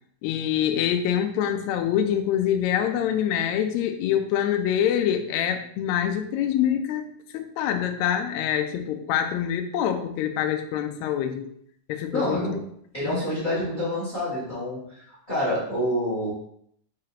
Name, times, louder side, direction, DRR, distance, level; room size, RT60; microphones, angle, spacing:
voice 1, 0.2-11.5 11.9-12.5 13.0-13.2, left 9 dB, 85° left, 6 dB, 1.6 m, -25 dB
voice 2, 12.1-16.3, equal, 25° left, -9 dB, 1.1 m, -28 dB
5.0 x 3.8 x 2.8 m, 0.68 s
omnidirectional pair, 3.8 m